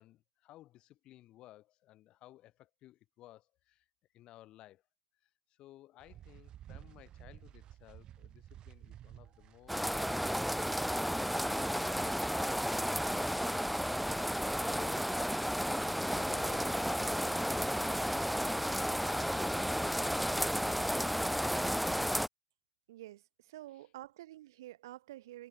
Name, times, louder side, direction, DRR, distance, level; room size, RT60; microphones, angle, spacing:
voice 1, 0.0-3.8 4.1-4.8 5.5-15.4, left 15 dB, 40° left, 6.6 m, -58 dB
sound 1, 6.0-19.4, right 11 dB, 35° right, 5.5 m, -57 dB
sound 2, 9.7-22.3, equal, ahead, 0.8 m, -32 dB
voice 2, 22.9-25.5, right 15 dB, 65° right, 3.3 m, -49 dB
hypercardioid pair, 90°, 2 cm